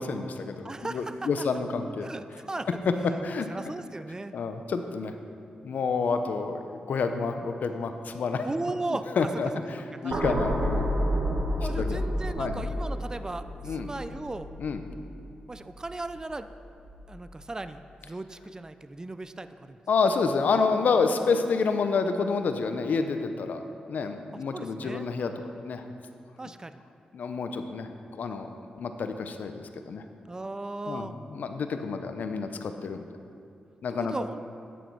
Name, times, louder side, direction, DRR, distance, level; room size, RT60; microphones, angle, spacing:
voice 1, 0.0-2.1 3.2-3.5 4.3-5.1 5.6-8.5 9.2-10.8 11.8-12.0 12.4-12.6 13.6-13.9 14.6-14.8 19.9-23.6 23.9-25.3 25.6-25.8 27.1-27.9 28.2-28.5 28.8-30.0 30.9-33.0 33.8-34.1, left 4 dB, 70° left, 7 dB, 0.8 m, -28 dB
voice 2, 0.6-1.5 2.0-2.8 3.5-4.4 8.4-9.3 9.9-10.3 11.6-14.5 15.5-16.5 17.1-19.8 24.3-25.1 26.4-26.8 30.3-31.1 34.0-34.4, right 2 dB, 25° right, 11 dB, 0.5 m, -37 dB
ogun-widewhizz, 10.1-16.4 16.8-17.0, equal, 55° right, 1.6 m, -30 dB
10.0 x 9.2 x 4.7 m, 2.4 s
cardioid pair, 50°, 3 cm